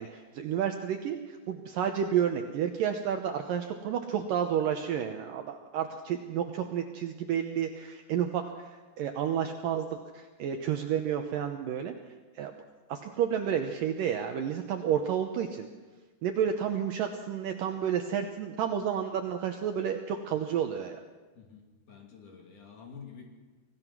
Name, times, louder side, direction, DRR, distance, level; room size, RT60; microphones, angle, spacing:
voice 1, 0.0-12.0 12.4-12.5 12.9-15.7 16.2-21.0, right 8 dB, 70° right, 5 dB, 2.2 m, -31 dB
voice 2, 21.4-23.2, left 6 dB, 50° left, 1 dB, 3.7 m, -49 dB
25.0 x 17.0 x 6.1 m, 1.3 s
omnidirectional pair, 4.9 m